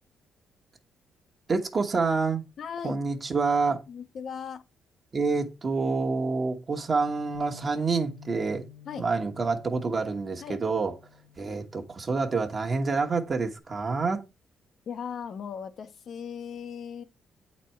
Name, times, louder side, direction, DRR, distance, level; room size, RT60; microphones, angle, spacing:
voice 1, 1.5-2.4 2.8-3.8 5.1-8.6 9.0-10.9 11.4-14.2, right 4 dB, 40° right, 1.2 m, -27 dB
voice 2, 2.6-3.0 3.9-4.6 8.9-9.1 10.4-10.6 14.9-17.0, left 7 dB, 60° left, 0.9 m, -37 dB
Bass guitar, 7.3-13.6, left 9 dB, 60° right, 1.4 m, -51 dB
8.2 x 4.2 x 4.4 m
cardioid pair, 90°, 0 cm